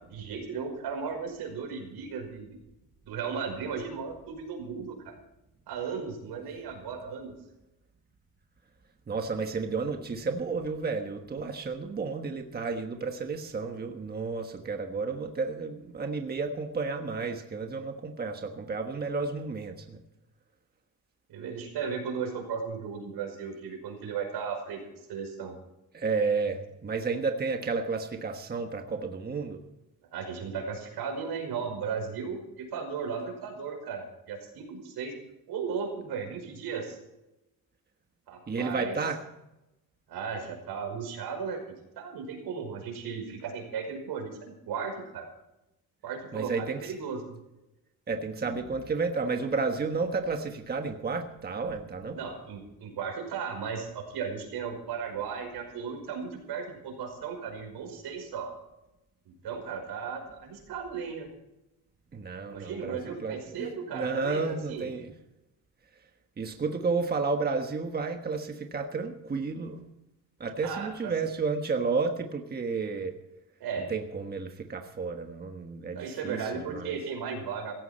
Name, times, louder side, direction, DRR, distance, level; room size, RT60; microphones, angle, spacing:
voice 1, 0.1-2.5 3.0-5.1 5.7-7.3 21.3-25.5 30.1-35.1 35.5-37.0 38.3-39.0 40.1-45.3 46.0-47.2 52.1-58.5 59.3-61.3 62.5-64.9 70.6-71.1 73.6-73.9 75.9-77.7, right 6 dB, 80° right, 3 dB, 5.5 m, -36 dB
voice 2, 9.1-20.0 25.9-29.6 38.5-39.2 46.3-46.9 48.1-52.2 62.1-65.1 66.4-69.8 70.4-73.1 73.8-76.4 76.7-77.0, right 4 dB, 25° right, 5 dB, 1.3 m, -32 dB
17.0 x 15.0 x 4.4 m, 0.91 s
cardioid pair, 145°, 38 cm